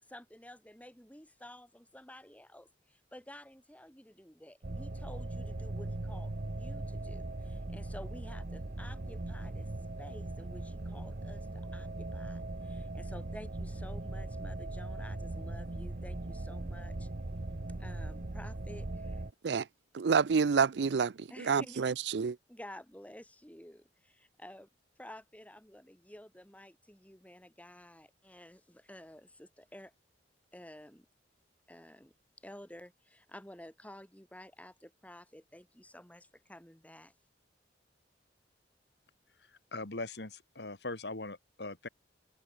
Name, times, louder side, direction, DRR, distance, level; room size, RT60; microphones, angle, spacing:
voice 1, 0.1-9.7 10.0-17.1 17.8-19.2 21.3-21.9 22.2-24.7 25.0-29.9 30.5-31.0 31.7-32.1 32.4-37.1, left 1 dB, 10° left, 4.8 m, -52 dB
sound 1, 4.6-19.3, right 2 dB, 50° right, 1.0 m, -39 dB
voice 2, 19.9-22.4, right 5 dB, 75° right, 0.5 m, -28 dB
voice 3, 39.7-41.9, left 2 dB, 70° left, 2.6 m, -40 dB
open air
head